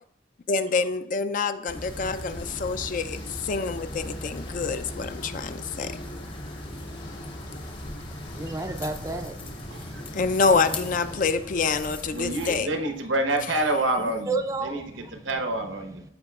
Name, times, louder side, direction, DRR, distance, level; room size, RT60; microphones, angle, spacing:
voice 1, 0.5-6.0 10.1-12.7, left 4 dB, 45° left, 10 dB, 0.4 m, -26 dB
sound 1, 1.7-12.6, left 1 dB, 30° left, 0.8 m, -40 dB
sound 2, 1.8-11.2, left 1 dB, 65° left, 1.5 m, -42 dB
voice 2, 8.3-9.9 14.3-14.8, right 3 dB, 15° right, 6 dB, 0.4 m, -31 dB
voice 3, 9.7-10.0 12.1-16.0, right 2 dB, 85° right, 5 dB, 1.0 m, -28 dB
14.0 x 4.9 x 2.4 m, 0.79 s
head